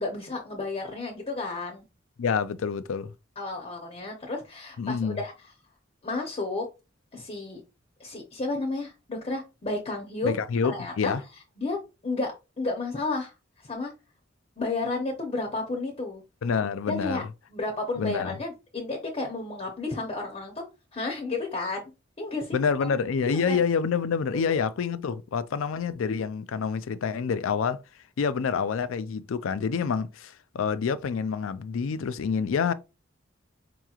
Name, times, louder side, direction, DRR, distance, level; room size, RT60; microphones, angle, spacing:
voice 1, 0.0-1.8 3.4-5.3 6.0-6.7 7.1-7.6 8.0-10.3 10.7-11.1 11.6-11.8 12.0-13.3 13.6-13.9 14.6-16.2 16.9-17.2 17.5-20.6 20.9-21.9 22.2-22.6 23.5-23.6 24.5-24.6, left 3 dB, 30° left, 0.8 m, -32 dB
voice 2, 2.2-3.1 4.8-5.2 10.2-11.2 16.4-17.3 18.0-18.4 22.5-27.8 28.2-32.7, left 6 dB, 80° left, 0.4 m, -27 dB
4.7 x 2.9 x 2.4 m
head